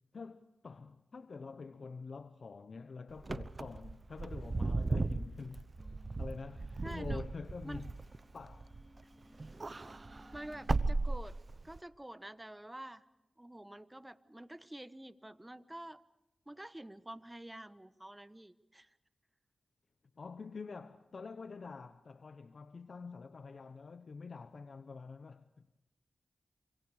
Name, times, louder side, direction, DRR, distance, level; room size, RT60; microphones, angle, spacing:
voice 1, 0.1-5.7 6.2-7.9 8.3-8.7 20.2-25.8, left 4 dB, 65° left, 0.9 m, -47 dB
Wind / Car, 3.2-9.0 9.3-11.8, right 3 dB, 45° right, 0.9 m, -36 dB
sound 1, 5.8-11.0, left 1 dB, 15° left, 3.0 m, -61 dB
voice 2, 6.8-7.2 7.6-7.8 10.3-11.4 11.6-13.0 13.4-16.0 16.5-18.9, right 1 dB, 15° right, 1.1 m, -48 dB
27.5 x 26.0 x 4.9 m
cardioid pair, 45°, 0 cm